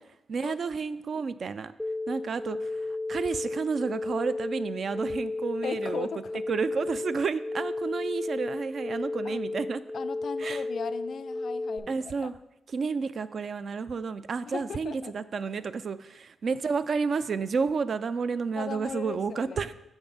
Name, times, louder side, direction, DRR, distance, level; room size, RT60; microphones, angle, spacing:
voice 1, 0.3-1.7 2.1-6.1 6.5-9.8 10.4-10.6 11.9-12.3 12.7-19.7, right 5 dB, 55° right, 13 dB, 0.3 m, -31 dB
sound 1, 1.8-11.8, left 2 dB, 5° left, 0.5 m, -33 dB
voice 2, 5.6-6.3 9.2-9.4 9.9-12.3 14.5-15.2 18.5-19.7, left 7 dB, 65° left, 13 dB, 0.3 m, -38 dB
7.0 x 4.9 x 4.0 m, 0.89 s
cardioid pair, 65°, 0 cm